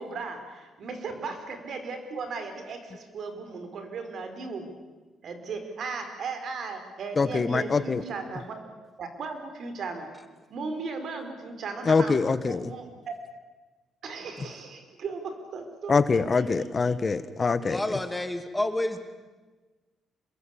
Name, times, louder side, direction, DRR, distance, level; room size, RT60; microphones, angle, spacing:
voice 1, 0.0-4.7 5.2-8.6 9.0-10.1 10.5-12.1 12.4-13.1 14.0-16.0 16.3-16.4 16.8-16.9, right 4 dB, 60° right, 7 dB, 5.0 m, -36 dB
voice 2, 7.2-8.0 11.9-12.7 15.9-18.0, left 4 dB, 35° left, 13 dB, 1.3 m, -24 dB
voice 3, 17.6-19.0, left 1 dB, 10° left, 7 dB, 2.5 m, -29 dB
27.0 x 21.5 x 8.6 m, 1.3 s
cardioid pair, 90°, 0 cm